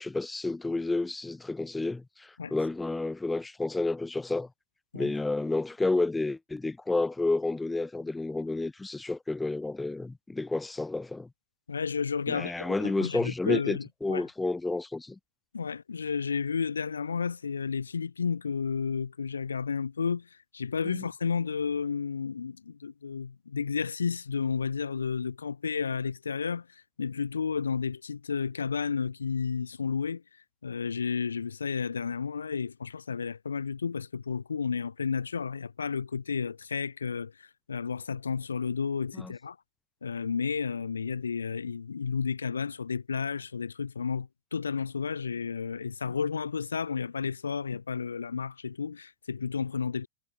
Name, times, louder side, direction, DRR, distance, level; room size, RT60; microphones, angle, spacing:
voice 1, 0.0-4.5 4.9-11.3 12.3-15.2 20.8-21.0 39.1-39.3, left 2 dB, 10° left, 4.7 m, -30 dB
voice 2, 11.7-14.2 15.5-30.2 30.6-39.6 40.0-50.1, left 6 dB, 75° left, 6.6 m, -32 dB
figure-of-eight pair, 90°, 0 cm